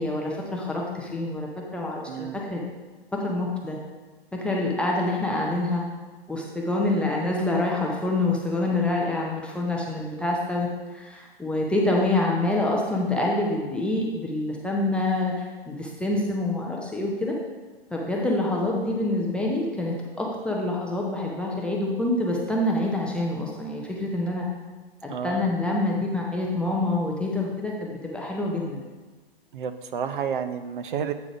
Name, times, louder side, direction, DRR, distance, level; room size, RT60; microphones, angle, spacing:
voice 1, 0.0-2.6 3.2-3.8 4.3-5.8 6.3-17.3 17.9-24.5 25.0-28.8, left 2 dB, 5° left, -3 dB, 0.5 m, -26 dB
voice 2, 2.1-2.4 25.1-25.5 29.5-31.1, right 7 dB, 55° right, 9 dB, 0.6 m, -30 dB
8.3 x 3.7 x 5.0 m, 1.3 s
figure-of-eight pair, 120°, 31 cm